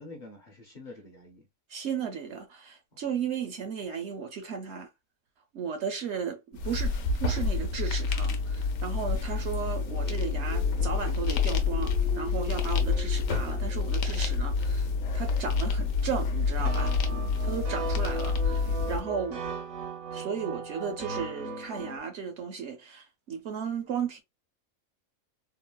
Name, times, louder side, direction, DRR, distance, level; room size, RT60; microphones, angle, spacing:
voice 1, 0.0-1.5 17.1-17.5 18.6-19.4, left 1 dB, 45° left, 0.7 m, -47 dB
voice 2, 1.7-4.9 5.5-6.4 6.6-14.9 15.1-17.0 17.4-19.4 20.1-24.2, right 6 dB, 65° right, 0.8 m, -35 dB
sound 1, 6.5-19.0, left 4 dB, 75° left, 1.0 m, -28 dB
sound 2, 9.8-16.4, left 4 dB, 10° left, 0.3 m, -45 dB
sound 3, 16.7-22.0, right 3 dB, 90° right, 1.7 m, -37 dB
3.7 x 2.0 x 2.2 m
omnidirectional pair, 1.4 m